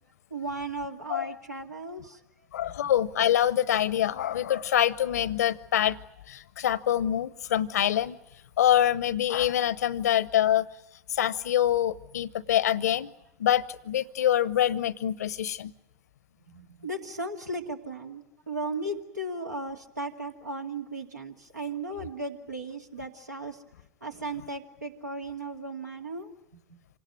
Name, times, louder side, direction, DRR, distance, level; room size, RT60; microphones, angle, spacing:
voice 1, 0.3-2.2 2.8-2.9 16.5-23.6 24.0-26.8, right 2 dB, 85° right, 2.3 m, -36 dB
voice 2, 2.5-6.0 6.3-8.2 8.6-10.7 11.1-13.1 13.4-15.7, left 11 dB, 70° left, 0.8 m, -25 dB
27.0 x 18.5 x 9.9 m
figure-of-eight pair, 80°, 9 cm